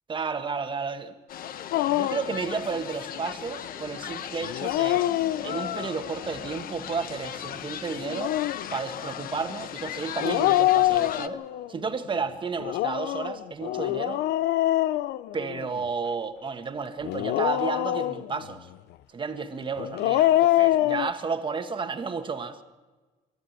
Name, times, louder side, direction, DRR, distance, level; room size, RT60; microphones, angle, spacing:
voice 1, 0.1-1.1 1.8-5.0 5.4-8.4 8.7-11.4 11.7-14.2 15.3-18.7 19.1-22.6, right 5 dB, 30° right, 8 dB, 1.7 m, -32 dB
sound 1, 1.3-11.3, left 10 dB, 60° left, 1.0 m, -37 dB
Dog, 1.7-2.3 4.4-5.8 7.9-8.7 10.2-11.7 12.6-15.8 17.0-18.4 19.8-21.1, left 15 dB, 80° left, 0.6 m, -25 dB
23.5 x 13.0 x 8.8 m, 1.3 s
cardioid pair, 110°, 17 cm